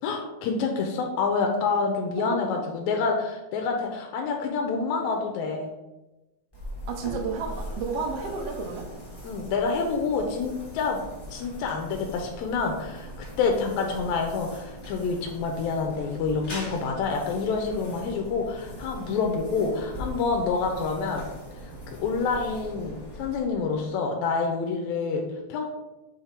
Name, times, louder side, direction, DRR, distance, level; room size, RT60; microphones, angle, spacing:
voice 1, 0.0-5.7 9.2-11.0 11.3-13.1 13.4-21.3 21.9-25.7, left 4 dB, 85° left, 2 dB, 2.0 m, -27 dB
voice 2, 2.2-2.5 6.9-8.9, right 5 dB, 70° right, 3 dB, 1.6 m, -32 dB
sound 1, 6.5-23.9, equal, 30° left, 0.4 m, -41 dB
7.3 x 3.1 x 4.4 m, 1.0 s
omnidirectional pair, 3.4 m